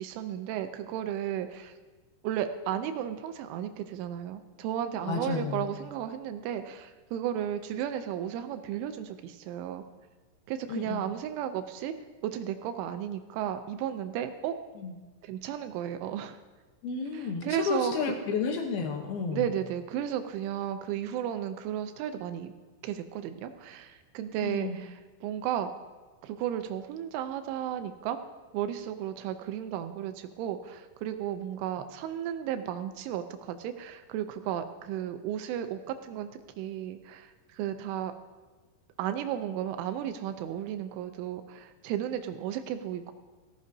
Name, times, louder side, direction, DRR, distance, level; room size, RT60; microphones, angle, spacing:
voice 1, 0.0-1.7 2.2-9.8 10.5-11.9 12.2-14.6 15.2-16.4 17.1-17.9 19.3-22.5 22.8-25.7 26.2-28.2 28.5-36.3 36.6-38.1 39.0-43.1, right 10 dB, 85° right, 8 dB, 3.0 m, -34 dB
voice 2, 5.0-5.8 10.7-11.1 14.8-14.9 16.8-19.5 24.4-24.8, left 5 dB, 75° left, 4 dB, 2.3 m, -32 dB
18.0 x 15.0 x 2.7 m, 1.3 s
omnidirectional pair, 5.6 m